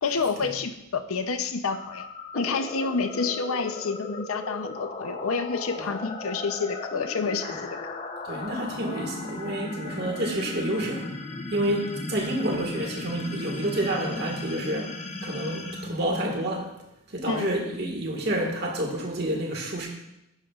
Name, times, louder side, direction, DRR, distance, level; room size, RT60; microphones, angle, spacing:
voice 1, 0.0-2.1 2.3-7.8 17.3-17.7, left 4 dB, 90° left, 9 dB, 0.7 m, -29 dB
sound 1, 1.7-16.8, left 2 dB, 30° left, 0.7 m, -37 dB
voice 2, 8.2-11.1 11.5-16.7 17.1-19.9, right 1 dB, 50° right, 1 dB, 1.8 m, -29 dB
11.5 x 9.6 x 2.4 m, 0.87 s
head